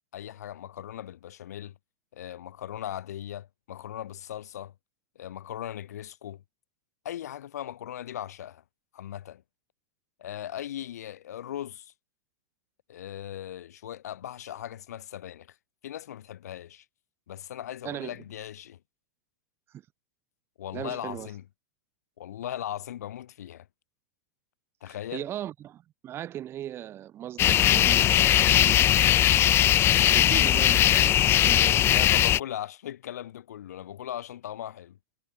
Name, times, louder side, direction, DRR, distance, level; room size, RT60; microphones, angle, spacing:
voice 1, 0.1-1.7 2.1-4.7 5.2-6.4 7.0-8.6 8.9-9.4 10.2-11.9 12.9-15.6 15.8-16.9 17.3-18.8 20.6-21.4 22.2-23.7 24.8-25.3 31.7-35.0, left 11 dB, 80° left, 7.5 m, -38 dB
voice 2, 17.8-18.2 20.7-21.3 24.9-28.8 30.1-31.8, right 11 dB, 30° right, 7.0 m, -38 dB
sound 1, 27.4-32.4, left 12 dB, 30° left, 1.3 m, -20 dB
hypercardioid pair, 135°, 9 cm